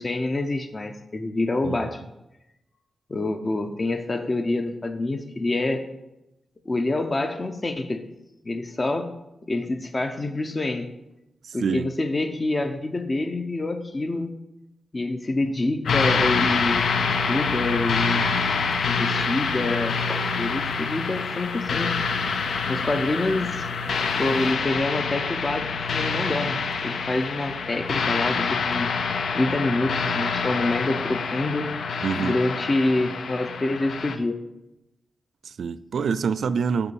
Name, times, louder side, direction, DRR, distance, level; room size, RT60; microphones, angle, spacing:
voice 1, 0.0-2.0 3.1-5.8 6.7-8.0 8.4-9.1 9.5-10.9 11.5-14.3 14.9-16.8 17.3-18.3 18.9-22.0 22.7-23.7 24.1-31.7 32.2-34.4, left 2 dB, 25° left, 0.6 m, -27 dB
voice 2, 11.4-11.9 32.0-32.4 35.4-36.9, right 6 dB, 70° right, 0.3 m, -26 dB
sound 1, 15.9-34.2, left 5 dB, 75° left, 0.6 m, -26 dB
6.8 x 5.5 x 6.9 m
wide cardioid pair, 155°, 0 cm